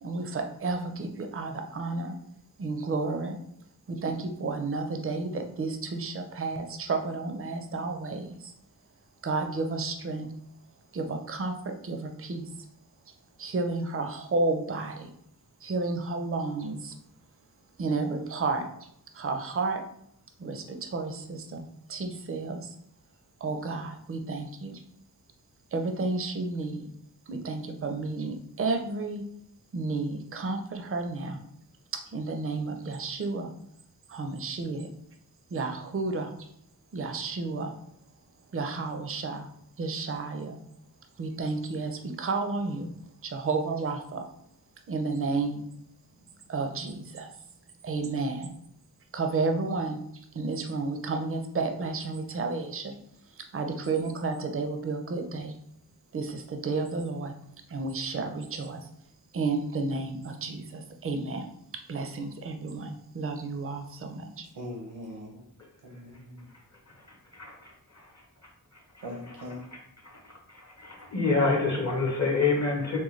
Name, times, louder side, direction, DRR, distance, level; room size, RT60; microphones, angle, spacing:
voice 1, 0.0-2.2 2.6-3.4 3.9-8.5 9.2-10.3 10.9-12.5 13.4-15.1 15.6-17.0 17.8-18.7 19.1-19.8 20.4-22.8 23.4-24.8 25.7-26.9 27.3-29.2 29.7-31.5 32.1-33.5 34.1-34.9 35.5-36.5 36.9-37.7 38.5-39.5 39.8-40.6 41.2-42.9 43.2-44.2 44.9-45.6 46.5-47.3 47.8-48.6 49.1-50.0 50.3-53.0 53.3-55.6 56.1-57.4 57.7-58.8 59.3-61.5 61.9-64.5, right 3 dB, 35° right, 5 dB, 0.4 m, -31 dB
voice 2, 64.5-65.4 65.8-66.5 69.0-69.7, left 1 dB, 80° right, 0 dB, 0.7 m, -40 dB
voice 3, 70.8-73.0, left 3 dB, 45° left, -1 dB, 0.8 m, -26 dB
3.8 x 2.2 x 3.1 m, 0.70 s
wide cardioid pair, 85°, 38 cm